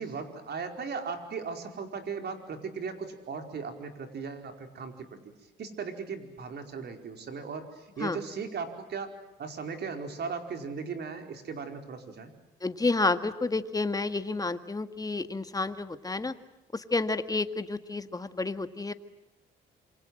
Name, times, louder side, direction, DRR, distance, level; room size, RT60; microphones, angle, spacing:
voice 1, 0.0-5.2 5.6-9.1 9.4-12.3, right 5 dB, 55° right, 6 dB, 4.9 m, -37 dB
voice 2, 12.6-16.3 16.7-18.9, left 3 dB, 20° left, 10 dB, 1.8 m, -30 dB
27.5 x 25.0 x 7.8 m, 0.98 s
cardioid pair, 90°, 20 cm